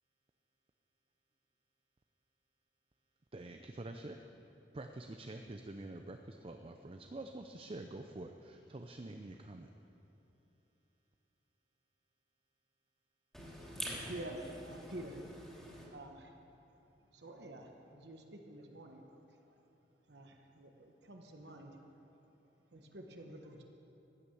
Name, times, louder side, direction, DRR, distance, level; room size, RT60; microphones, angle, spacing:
voice 1, 3.3-4.2 4.7-9.7, right 2 dB, 30° right, 5 dB, 0.5 m, -47 dB
voice 2, 13.3-15.9, equal, ahead, -5 dB, 3.0 m, -46 dB
voice 3, 14.1-15.2 15.9-16.4 17.1-19.0 20.1-21.8 22.7-23.6, right 1 dB, 70° right, 3 dB, 1.2 m, -49 dB
14.5 x 9.6 x 7.1 m, 2.9 s
head